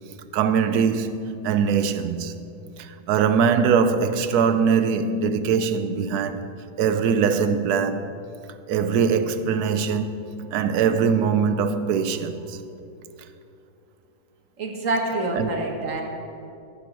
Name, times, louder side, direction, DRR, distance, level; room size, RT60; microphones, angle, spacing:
voice 1, 0.3-2.3 2.8-6.5 6.8-8.1 8.7-10.1 10.5-12.6 15.4-15.5, right 6 dB, 85° right, 1.2 m, -22 dB
voice 2, 14.6-16.0, right 2 dB, 60° right, 1.5 m, -26 dB
13.5 x 5.0 x 7.4 m
omnidirectional pair, 1.6 m